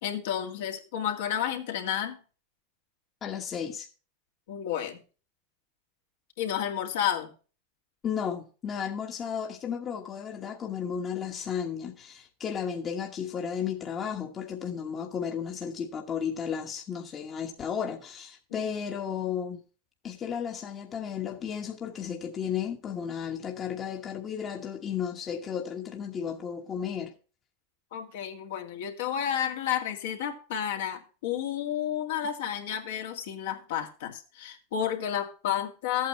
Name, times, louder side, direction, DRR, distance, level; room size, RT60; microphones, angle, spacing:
voice 1, 0.0-2.2 4.5-5.0 6.4-7.3 18.5-18.7 27.9-36.1, left 9 dB, 75° left, 2.1 m, -31 dB
voice 2, 3.2-3.9 8.0-19.6 20.0-27.1, left 7 dB, 30° left, 1.3 m, -34 dB
14.0 x 8.6 x 3.1 m
hypercardioid pair, 105°, 0 cm